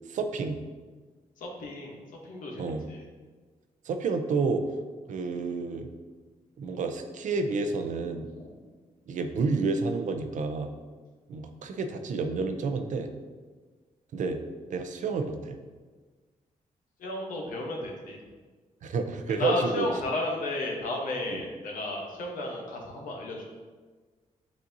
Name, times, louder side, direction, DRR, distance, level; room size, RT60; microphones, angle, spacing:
voice 1, 0.1-0.6 2.6-2.8 3.9-4.6 5.1-5.9 6.6-8.3 9.1-10.7 11.3-13.1 14.1-14.4 14.7-15.6 18.8-19.9 21.3-21.4, right 4 dB, 70° right, 7 dB, 0.5 m, -30 dB
voice 2, 1.4-2.0 2.2-3.0 17.0-18.2 19.4-23.6, left 2 dB, 90° left, 0 dB, 0.9 m, -33 dB
7.5 x 2.6 x 2.6 m, 1.4 s
cardioid pair, 80°, 13 cm